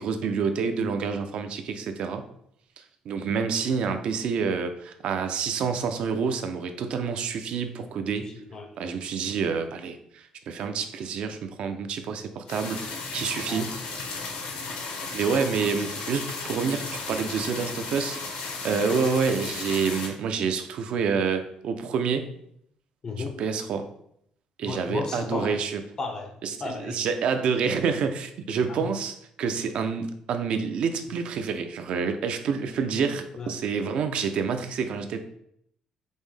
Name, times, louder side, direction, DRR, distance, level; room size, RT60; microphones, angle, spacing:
voice 1, 0.0-2.2 2.8-8.3 8.8-12.8 13.1-13.7 15.1-22.3 23.2-23.9 24.6-25.8 26.4-35.2, right 6 dB, 60° right, 8 dB, 0.4 m, -28 dB
voice 2, 8.4-8.7 13.4-13.6 18.9-19.1 23.0-23.4 24.6-25.6 26.0-26.4 26.6-27.0 33.4-33.5, left 4 dB, 30° left, 6 dB, 0.4 m, -34 dB
sound 1, 12.5-20.1, left 4 dB, 90° left, 0.9 m, -35 dB
5.3 x 2.1 x 3.2 m, 0.71 s
cardioid pair, 155°, 2 cm